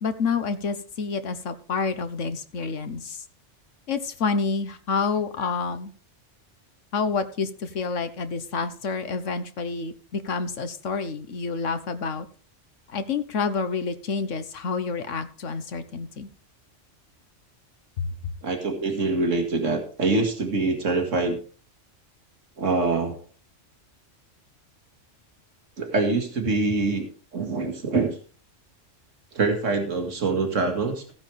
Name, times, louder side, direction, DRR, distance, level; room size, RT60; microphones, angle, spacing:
voice 1, 0.0-3.2 3.9-5.9 6.9-12.3 12.9-16.3 18.0-18.1, left 4 dB, 90° left, 10 dB, 1.5 m, -28 dB
voice 2, 18.4-21.4 22.6-23.2 25.8-27.1 27.3-28.2 29.3-31.1, right 3 dB, 85° right, 3 dB, 2.3 m, -24 dB
16.0 x 9.6 x 3.4 m, 0.40 s
omnidirectional pair, 1.3 m